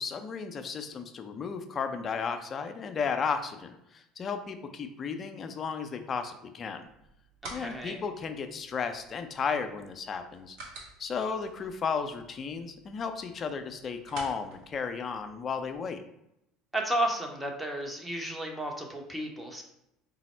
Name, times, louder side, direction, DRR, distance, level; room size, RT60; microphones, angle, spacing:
voice 1, 0.0-6.9 7.5-10.6 11.0-16.0, left 5 dB, 40° left, 7 dB, 0.5 m, -34 dB
sound 1, 6.8-15.7, right 2 dB, 65° right, 1.0 m, -50 dB
voice 2, 7.5-8.0 16.7-19.6, right 1 dB, 10° right, 1 dB, 0.9 m, -32 dB
4.0 x 2.0 x 4.3 m, 0.81 s
hypercardioid pair, 75°, 0 cm